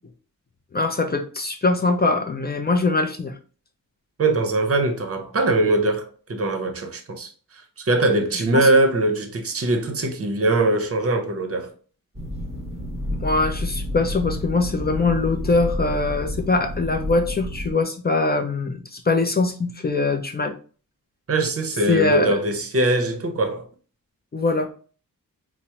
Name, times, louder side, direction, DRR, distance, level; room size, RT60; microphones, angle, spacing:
voice 1, 0.7-3.3 8.5-8.7 13.2-20.5 21.9-22.3 24.3-24.7, left 3 dB, 30° left, 0.4 m, -22 dB
voice 2, 4.2-11.7 21.3-23.7, right 2 dB, 40° right, 0.6 m, -22 dB
sound 1, 12.1-17.7, left 1 dB, 15° right, 1.1 m, -30 dB
4.4 x 2.0 x 2.8 m
wide cardioid pair, 130°, 36 cm